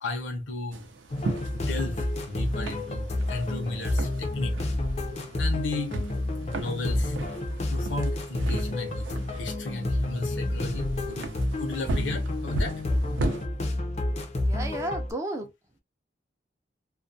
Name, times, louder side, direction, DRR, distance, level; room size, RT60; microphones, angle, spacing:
voice 1, 0.0-0.9 1.5-4.6 5.4-6.0 6.5-7.2 7.7-12.8, left 2 dB, 75° left, 0.7 m, -34 dB
sound 1, 0.7-13.5, right 1 dB, 80° right, 0.5 m, -36 dB
sound 2, 1.1-15.1, left 1 dB, 35° left, 0.5 m, -30 dB
voice 2, 14.4-15.5, right 1 dB, 15° right, 0.5 m, -32 dB
2.3 x 2.2 x 2.6 m
head